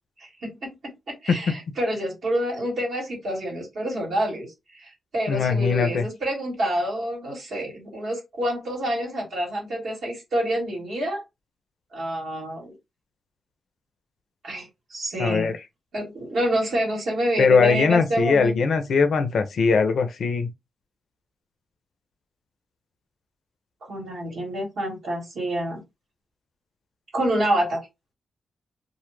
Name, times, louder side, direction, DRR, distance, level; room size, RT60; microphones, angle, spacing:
voice 1, 0.2-11.2 11.9-12.8 14.4-15.5 15.9-18.6 23.8-25.8 27.1-27.9, right 1 dB, 75° right, 1.1 m, -28 dB
voice 2, 5.3-6.1 15.2-15.5 17.4-20.5, left 5 dB, 70° left, 0.5 m, -20 dB
2.1 x 2.1 x 3.0 m
supercardioid pair, 45°, 0 cm